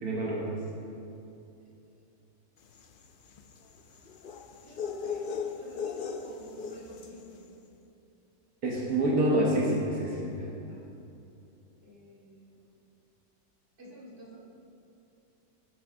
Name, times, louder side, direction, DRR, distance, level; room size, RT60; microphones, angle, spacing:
voice 1, 0.0-0.5 8.6-10.5, right 1 dB, 80° right, -3 dB, 1.6 m, -27 dB
sound 1, 2.7-7.3, left 6 dB, 60° left, 0.5 m, -38 dB
voice 2, 4.6-7.6 10.7-11.0 11.8-12.7 13.8-14.4, right 1 dB, 50° right, -5 dB, 2.1 m, -50 dB
18.0 x 7.7 x 2.6 m, 2.8 s
omnidirectional pair, 1.5 m